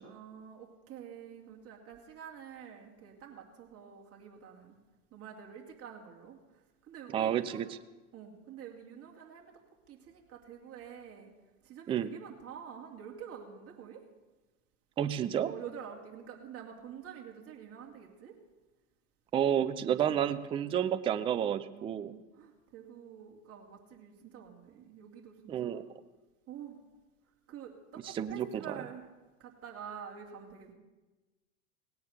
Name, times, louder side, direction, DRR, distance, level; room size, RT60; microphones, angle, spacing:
voice 1, 0.0-4.8 5.1-6.4 6.8-7.7 8.1-9.6 9.9-11.3 11.6-14.0 15.2-18.4 19.8-20.3 21.7-25.8 26.5-26.8 27.5-29.1 29.4-30.7, right 8 dB, 30° right, 0 dB, 2.8 m, -48 dB
voice 2, 7.1-7.8 11.9-12.1 15.0-15.5 19.3-22.1 25.5-25.8 28.0-28.7, right 9 dB, 15° right, 12 dB, 0.4 m, -30 dB
18.0 x 9.4 x 6.8 m, 1.1 s
hypercardioid pair, 105°, 44 cm